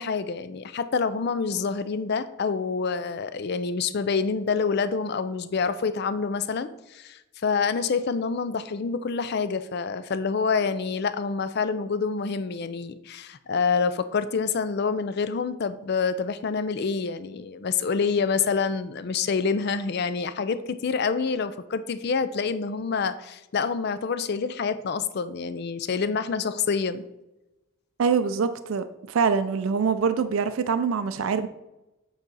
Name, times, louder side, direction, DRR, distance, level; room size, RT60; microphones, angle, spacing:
voice 1, 0.0-27.0, left 5 dB, 50° left, 13 dB, 0.4 m, -27 dB
voice 2, 28.0-31.5, right 5 dB, 75° right, 10 dB, 0.4 m, -24 dB
8.1 x 4.8 x 4.0 m, 0.97 s
head